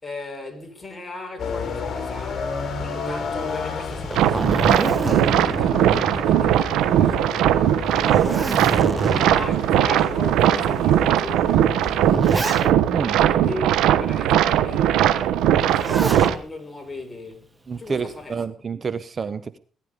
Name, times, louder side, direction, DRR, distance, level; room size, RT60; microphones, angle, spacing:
voice 1, 0.0-8.7 9.0-12.3 13.1-18.5, left 2 dB, 20° left, 4.6 m, -38 dB
sound 1, 1.4-12.0, left 5 dB, 50° left, 4.4 m, -33 dB
Zipper (clothing), 3.9-6.8 7.2-7.3 7.8-9.6 10.4-10.5 11.5-13.0 15.5-16.4 17.8-18.2, right 3 dB, 20° right, 1.4 m, -27 dB
sound 2, 4.1-16.3, right 11 dB, 90° right, 1.2 m, -19 dB
voice 2, 17.7-19.6, right 5 dB, 40° right, 1.0 m, -29 dB
18.5 x 11.5 x 5.3 m
cardioid pair, 90°, 0 cm